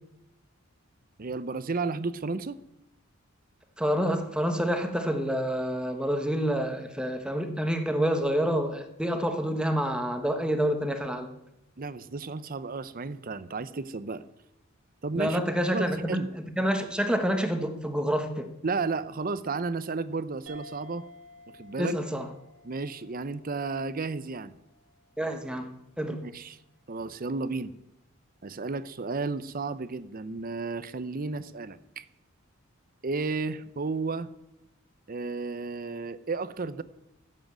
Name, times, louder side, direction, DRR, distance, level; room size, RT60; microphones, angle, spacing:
voice 1, 1.2-2.6 11.8-14.2 15.0-15.4 15.7-16.3 18.6-21.0 21.5-22.0 22.6-24.5 26.1-26.6 26.9-27.7 28.4-32.1 33.0-34.3 35.1-36.8, right 3 dB, 45° right, 15 dB, 0.7 m, -33 dB
voice 2, 3.8-11.3 15.1-16.2 16.6-18.5 21.8-22.3 25.2-26.2, equal, 5° right, 6 dB, 1.3 m, -28 dB
sound 1, 20.5-25.4, equal, 75° right, 1.8 m, -53 dB
14.5 x 7.8 x 7.6 m, 0.87 s
head